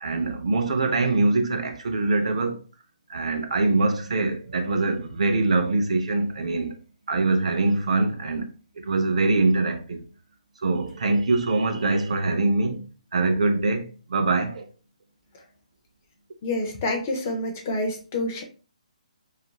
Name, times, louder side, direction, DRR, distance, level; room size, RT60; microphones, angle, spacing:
voice 1, 0.0-2.6 3.1-6.8 7.1-8.5 8.8-10.0 10.6-12.9 13.1-14.7, right 3 dB, 55° right, 0.5 m, -23 dB
voice 2, 16.4-18.4, left 2 dB, 20° left, 0.4 m, -28 dB
2.5 x 2.4 x 2.9 m
hypercardioid pair, 175°, 4 cm